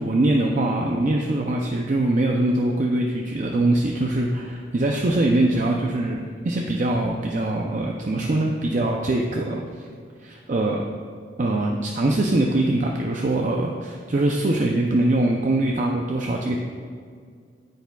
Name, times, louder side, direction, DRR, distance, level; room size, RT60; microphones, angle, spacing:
voice 1, 0.0-9.6 10.2-10.8 11.4-16.6, right 2 dB, 40° right, 1 dB, 0.5 m, -23 dB
10.0 x 8.1 x 2.3 m, 2.1 s
head